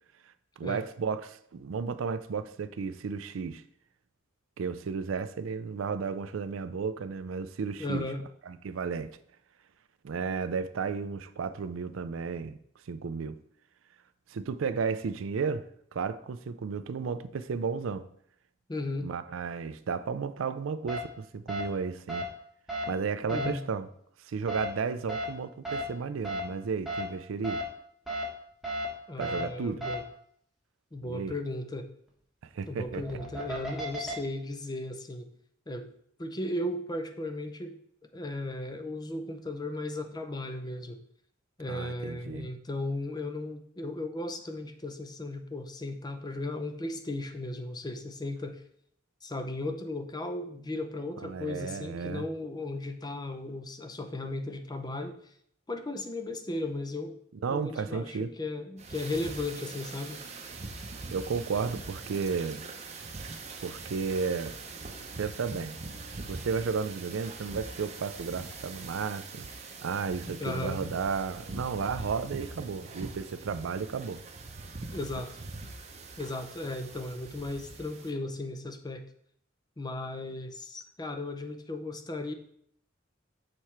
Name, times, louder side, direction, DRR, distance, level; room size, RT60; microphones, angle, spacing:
voice 1, 0.6-3.6 4.6-8.0 8.5-9.2 10.0-12.6 12.9-13.4 14.3-15.7 15.9-18.1 19.0-22.3 22.9-23.9 24.2-27.6 29.2-29.8 31.0-31.3 32.5-33.0 41.7-42.5 51.2-52.2 57.4-58.3 61.1-62.6 63.6-64.5 65.2-65.8 66.3-69.5 69.8-74.2, right 5 dB, 70° right, 0.4 m, -33 dB
voice 2, 7.8-8.2 18.7-19.1 23.3-23.6 29.1-30.0 30.9-31.9 32.7-35.3 35.7-35.9 36.2-37.8 38.1-41.0 41.6-48.6 49.2-55.2 55.7-57.2 57.5-60.2 70.4-70.8 74.9-75.3 76.2-79.0 79.8-82.3, left 2 dB, 20° left, 0.5 m, -36 dB
sound 1, 20.9-21.0 21.5-21.6 22.1-22.2 22.7-22.8 23.3-23.5 24.5-24.7 25.1-25.2 25.6-25.8 26.2-26.4 26.8-27.0 27.4-27.6 28.1-28.2 28.6-28.9 29.2-29.4 29.8-30.0 32.8-34.1, right 1 dB, ahead, 1.2 m, -33 dB
sound 2, 58.8-78.1, right 3 dB, 35° right, 0.7 m, -43 dB
6.6 x 4.3 x 4.5 m
head